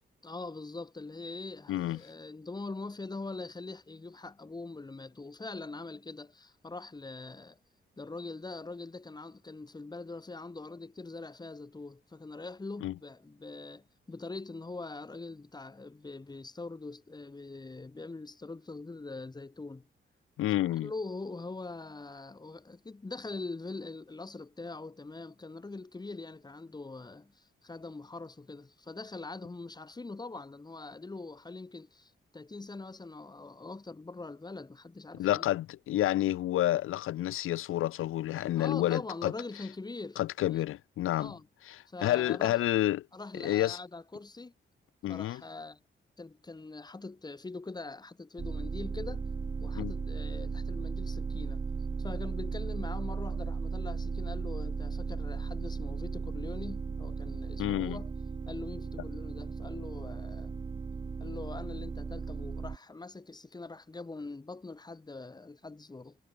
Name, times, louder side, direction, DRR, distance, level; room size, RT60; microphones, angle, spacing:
voice 1, 0.2-7.6 8.0-19.9 20.6-35.4 38.6-40.6 41.2-41.5 41.9-42.6 43.1-44.5 45.1-45.8 46.2-49.3 49.6-51.6 52.0-58.1 58.5-60.6 61.2-66.2, left 3 dB, 20° left, 2.1 m, -43 dB
voice 2, 1.7-2.0 12.8-12.9 20.4-20.9 35.2-39.3 40.2-41.3 41.7-43.1 43.4-43.8 45.0-45.4 49.8-49.9 57.6-58.0, left 14 dB, 85° left, 0.6 m, -29 dB
sound 1, 48.4-62.8, right 5 dB, 25° right, 0.6 m, -36 dB
cardioid pair, 105°, 21 cm